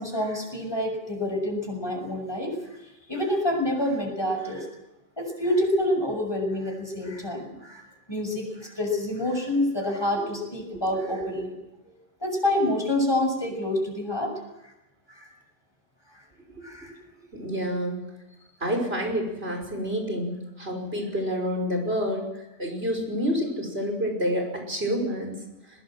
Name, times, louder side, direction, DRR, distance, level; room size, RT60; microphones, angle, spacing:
voice 1, 0.0-2.8 3.1-4.7 5.2-7.8 8.1-11.6 12.2-14.3 14.6-14.7 15.1-15.3 16.1-16.2 16.6-16.9 18.7-18.8, left 1 dB, 20° left, 3 dB, 6.7 m, -27 dB
voice 2, 10.7-11.1 17.3-18.1 18.6-22.3 22.6-25.4, equal, 55° right, 3 dB, 5.9 m, -28 dB
22.5 x 20.0 x 7.7 m, 0.96 s
omnidirectional pair, 1.2 m